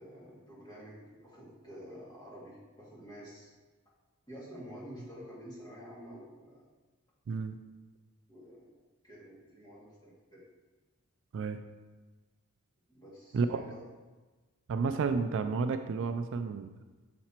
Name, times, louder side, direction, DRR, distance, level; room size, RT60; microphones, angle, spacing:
voice 1, 0.0-3.5 4.3-6.6 8.3-8.7 9.0-10.4 12.9-13.8, equal, 20° left, -7 dB, 2.0 m, -49 dB
voice 2, 7.3-7.6 11.3-11.6 13.3-13.6 14.7-16.7, right 4 dB, 55° right, 8 dB, 0.3 m, -31 dB
5.8 x 4.3 x 4.4 m, 1.2 s
head